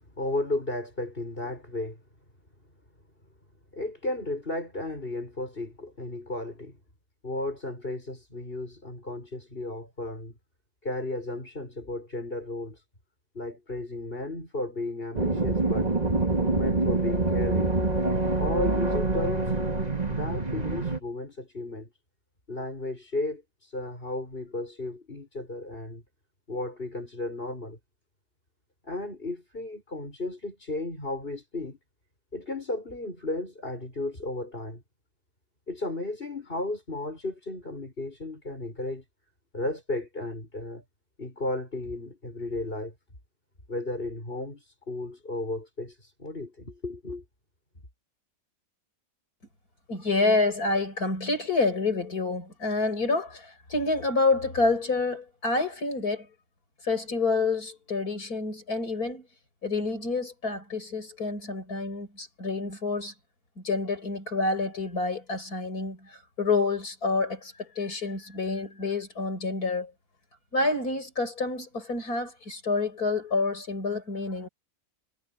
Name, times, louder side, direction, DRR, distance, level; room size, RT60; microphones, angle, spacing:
voice 1, 0.2-2.0 3.7-6.8 7.2-10.4 10.8-12.8 13.3-15.9 16.4-17.8 18.4-19.7 20.1-21.9 22.5-26.0 26.5-27.8 28.8-31.8 32.3-34.8 35.7-39.0 39.5-40.8 41.2-42.9 43.7-47.2, left 2 dB, 40° left, 7.4 m, -34 dB
sound 1, 15.2-21.0, right 2 dB, 25° right, 2.5 m, -26 dB
voice 2, 49.9-56.3 56.8-59.3 59.6-63.1 63.6-69.9 70.5-74.5, left 3 dB, 85° left, 6.5 m, -28 dB
omnidirectional pair, 1.6 m